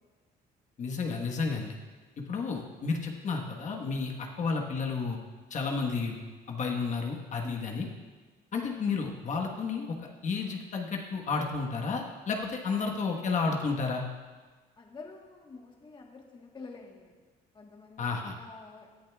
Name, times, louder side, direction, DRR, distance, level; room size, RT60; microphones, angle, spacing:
voice 1, 0.8-1.7 2.2-5.2 5.5-6.2 6.5-7.9 8.5-10.0 10.2-14.0 18.0-18.4, left 4 dB, 45° left, 1 dB, 1.4 m, -31 dB
voice 2, 14.8-17.2 17.5-18.9, left 4 dB, 30° left, 1 dB, 1.3 m, -47 dB
17.5 x 10.5 x 2.4 m, 1.4 s
cardioid pair, 110°, 17 cm